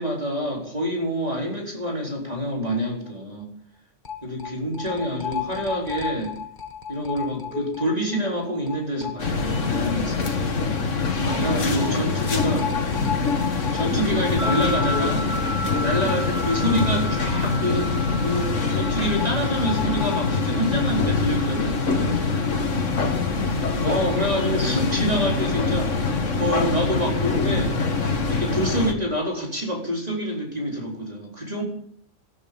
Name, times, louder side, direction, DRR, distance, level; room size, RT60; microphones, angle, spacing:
voice 1, 0.0-3.5 4.2-6.3 6.9-10.5 11.2-12.6 13.7-15.3 15.8-17.9 18.2-22.2 23.8-26.0 26.4-27.7 28.3-31.6, equal, 30° right, -1 dB, 4.4 m, -27 dB
sound 1, 2.7-2.8 3.1-3.2 4.0-9.8 10.1-10.2 11.4-17.5 17.8-17.9 18.8-20.3, left 7 dB, 40° left, 1.6 m, -34 dB
sound 2, 9.2-28.9, left 4 dB, 80° left, 2.1 m, -24 dB
voice 2, 11.2-13.3 22.6-23.7, equal, 20° left, 1 dB, 3.1 m, -39 dB
sound 3, 14.4-23.7, left 1 dB, 15° right, 5.8 m, -34 dB
20.0 x 13.0 x 5.4 m, 0.63 s
omnidirectional pair, 1.3 m